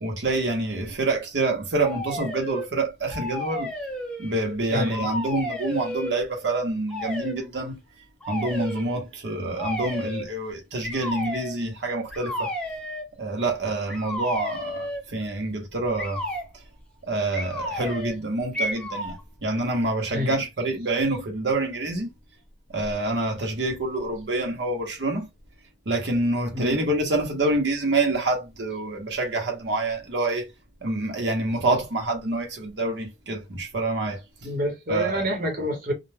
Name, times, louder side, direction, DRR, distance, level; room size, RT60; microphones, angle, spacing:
voice 1, 0.0-3.7 4.2-7.8 8.3-12.5 13.2-16.2 17.1-19.2 19.4-22.1 22.7-25.2 25.9-30.5 30.8-34.2 34.9-35.2, right 2 dB, 85° right, 0.8 m, -27 dB
sound 1, 1.8-2.7 3.1-4.6 4.9-6.2 6.9-7.4 8.2-8.9 9.6-10.3 10.8-11.6 12.1-13.1 13.9-15.1 16.0-16.5 17.3-18.2 18.5-19.2, left 1 dB, 5° left, 0.6 m, -32 dB
voice 2, 4.7-5.1 20.1-20.4 26.5-26.8 34.4-35.9, equal, 50° right, 1.0 m, -27 dB
2.1 x 2.1 x 3.2 m
head